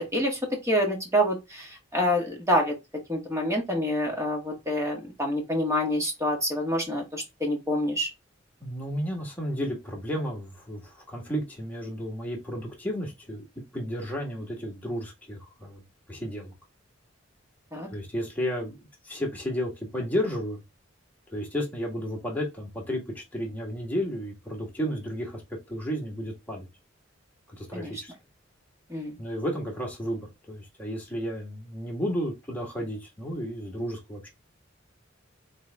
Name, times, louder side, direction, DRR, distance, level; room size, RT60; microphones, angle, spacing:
voice 1, 0.0-2.7 3.1-8.1 17.7-17.9 27.7-27.9 28.9-29.2, equal, 15° right, 1.5 m, -27 dB
voice 2, 8.6-13.5 13.7-15.8 16.1-16.5 17.9-20.6 21.3-25.4 25.7-26.7 27.5-28.1 29.2-34.3, equal, 10° left, 1.6 m, -32 dB
4.0 x 3.5 x 3.4 m
head